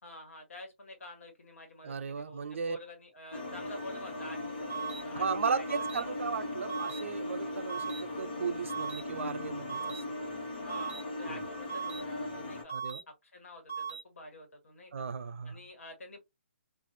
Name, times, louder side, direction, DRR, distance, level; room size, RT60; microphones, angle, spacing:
voice 1, 0.0-6.1 10.5-12.7 13.1-15.1 15.4-16.2, left 1 dB, 85° left, 1.5 m, -49 dB
voice 2, 1.8-2.8 5.2-9.9 11.2-11.4 12.7-13.0 14.9-15.6, right 5 dB, 65° right, 0.5 m, -35 dB
sound 1, 3.3-12.6, left 2 dB, 45° left, 1.1 m, -39 dB
sound 2, 4.7-5.0 5.7-6.0 6.7-7.0 7.7-8.0 8.7-9.0 9.7-10.0 10.7-11.0 11.7-12.0 12.7-13.0 13.7-14.0, right 6 dB, 10° left, 0.4 m, -37 dB
2.5 x 2.3 x 2.6 m
hypercardioid pair, 180°, 7 cm